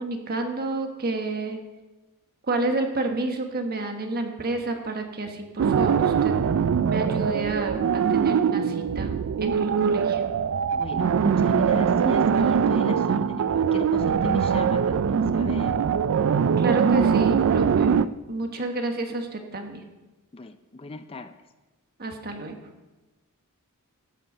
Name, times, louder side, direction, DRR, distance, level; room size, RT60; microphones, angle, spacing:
voice 1, 0.0-1.6 2.5-6.4 6.9-10.2 16.6-18.0 18.3-19.8 22.0-22.5, right 2 dB, 45° right, 4 dB, 1.3 m, -30 dB
sound 1, 5.6-18.1, right 7 dB, 65° right, 0.3 m, -22 dB
voice 2, 10.7-15.8 20.3-21.3, left 2 dB, 25° left, 10 dB, 0.4 m, -38 dB
13.0 x 7.7 x 5.4 m, 1.1 s
head